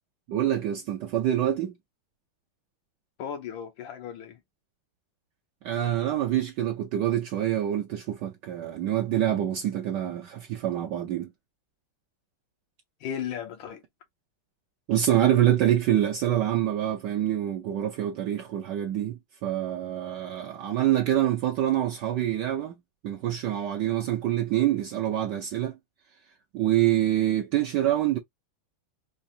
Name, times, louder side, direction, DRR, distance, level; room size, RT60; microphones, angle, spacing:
voice 1, 0.3-1.7 5.6-11.3 14.9-22.7 23.0-25.8 26.5-28.2, right 12 dB, 70° right, 1.1 m, -26 dB
voice 2, 3.2-4.4 13.0-13.8, left 8 dB, 75° left, 1.4 m, -35 dB
4.7 x 2.4 x 2.6 m
omnidirectional pair, 2.3 m